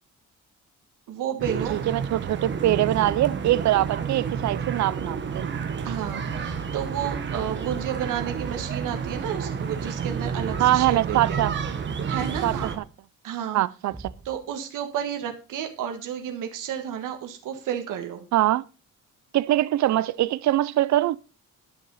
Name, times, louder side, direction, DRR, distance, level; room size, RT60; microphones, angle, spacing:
voice 1, 1.1-1.8 5.8-11.5 12.1-12.8 13.2-13.6 14.2-18.3, right 9 dB, 90° right, 1.6 m, -31 dB
sound 1, 1.4-12.8, right 6 dB, 35° right, 1.3 m, -30 dB
voice 2, 1.7-5.5 10.6-11.5 12.4-12.6 13.5-14.1 18.3-18.6 19.3-21.2, right 14 dB, 65° right, 0.5 m, -23 dB
Thump thud, 8.8-9.1 10.5-10.8 12.2-12.6 13.9-14.5, right 3 dB, 10° right, 0.9 m, -43 dB
10.5 x 6.5 x 5.5 m
cardioid pair, 175°, 31 cm